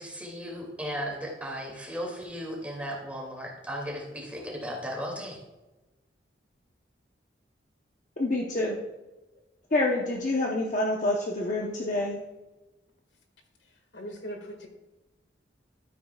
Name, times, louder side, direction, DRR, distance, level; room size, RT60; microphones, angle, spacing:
voice 1, 0.0-5.4, equal, 10° right, -1 dB, 2.5 m, -36 dB
voice 2, 8.2-8.8 9.7-12.2, left 2 dB, 45° left, -1 dB, 1.0 m, -27 dB
voice 3, 13.9-14.7, equal, 80° left, 4 dB, 1.9 m, -39 dB
13.0 x 9.4 x 2.4 m, 1.1 s
head